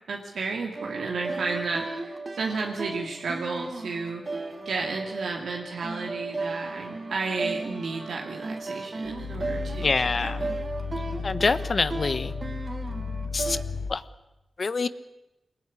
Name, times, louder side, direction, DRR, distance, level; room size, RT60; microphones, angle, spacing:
voice 1, 0.1-10.6, right 4 dB, 85° right, 0 dB, 2.6 m, -33 dB
sound 1, 0.7-13.6, right 3 dB, 45° right, 2.9 m, -35 dB
Growling, 9.1-14.0, left 4 dB, 85° left, 1.4 m, -34 dB
voice 2, 9.8-10.4 11.2-12.3 13.3-13.6 13.9-14.0 14.6-14.9, left 4 dB, 55° left, 14 dB, 1.1 m, -25 dB
23.5 x 20.5 x 9.8 m, 0.96 s
cardioid pair, 60°, 0 cm